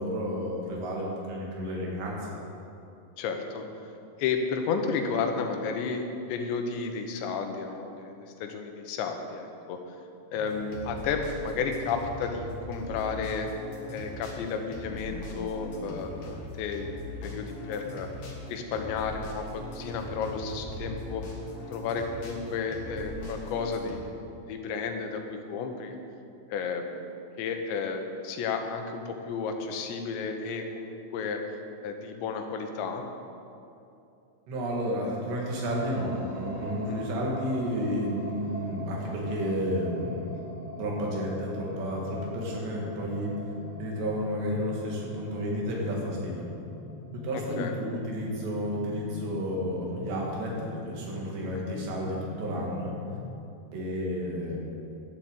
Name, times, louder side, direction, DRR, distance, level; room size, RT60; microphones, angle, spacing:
voice 1, 0.0-2.2 34.5-40.3 40.8-43.3 43.8-46.5 47.1-53.0 53.7-54.6, equal, 75° right, -2 dB, 4.3 m, -31 dB
voice 2, 3.2-3.6 4.2-6.0 6.3-9.8 10.3-13.5 13.9-16.9 17.2-18.1 18.5-21.2 21.7-26.0 26.5-27.0 27.4-31.4 31.8-33.0 36.9-37.1 47.6-47.7 51.5-51.8, left 5 dB, 85° left, 5 dB, 3.2 m, -32 dB
sound 1, 10.4-24.0, left 1 dB, 60° left, 3.0 m, -40 dB
sound 2, 35.7-53.3, left 1 dB, 55° right, 4.4 m, -41 dB
11.5 x 7.7 x 8.0 m, 2.7 s
omnidirectional pair, 5.0 m